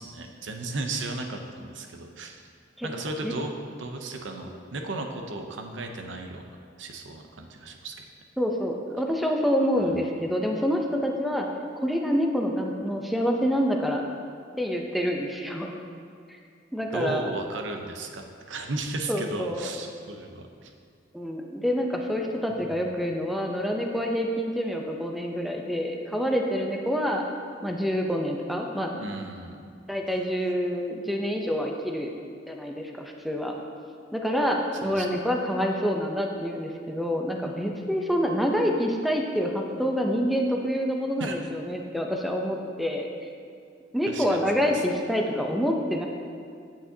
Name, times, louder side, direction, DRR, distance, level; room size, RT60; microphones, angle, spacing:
voice 1, 0.0-2.4 2.8-6.4 6.8-8.0 9.8-10.0 16.9-20.7 22.5-22.7 29.0-29.7 34.8-35.1 41.2-41.4 44.1-44.8, right 2 dB, 75° right, 4 dB, 0.7 m, -35 dB
voice 2, 8.4-11.5 11.8-14.0 14.6-15.7 16.7-17.3 19.1-19.7 21.1-27.2 27.6-29.0 29.9-32.1 32.5-33.5 34.1-43.1 43.9-46.1, equal, ahead, 1 dB, 0.6 m, -27 dB
8.6 x 8.4 x 2.8 m, 2.3 s
head